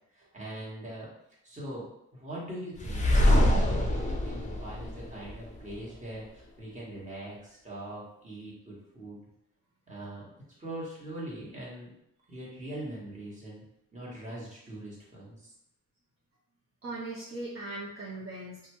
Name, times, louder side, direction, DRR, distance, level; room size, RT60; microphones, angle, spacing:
voice 1, 0.1-1.1 1.4-9.2 9.9-10.3 10.6-11.9 12.3-13.6 13.9-15.5, right 1 dB, 25° right, -6 dB, 1.4 m, -42 dB
sound 1, 2.8-5.7, left 1 dB, 25° left, 0.6 m, -25 dB
voice 2, 16.8-18.8, right 2 dB, 45° right, -7 dB, 0.9 m, -39 dB
2.7 x 2.3 x 3.0 m, 0.78 s
cardioid pair, 65°, 31 cm